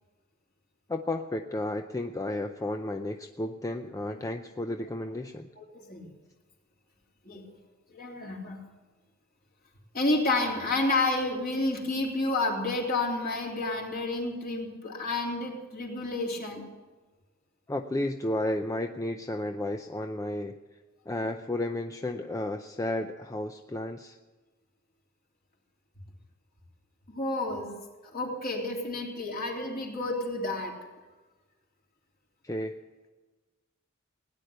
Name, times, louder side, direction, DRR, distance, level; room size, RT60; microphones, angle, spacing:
voice 1, 0.9-5.5 17.7-20.5 21.1-24.2 32.4-32.8, left 1 dB, 15° left, 6 dB, 0.6 m, -32 dB
voice 2, 8.0-8.6 9.9-16.6 27.1-27.7 28.1-30.7, left 2 dB, 45° left, -1 dB, 3.4 m, -30 dB
17.0 x 10.0 x 8.0 m, 1.2 s
head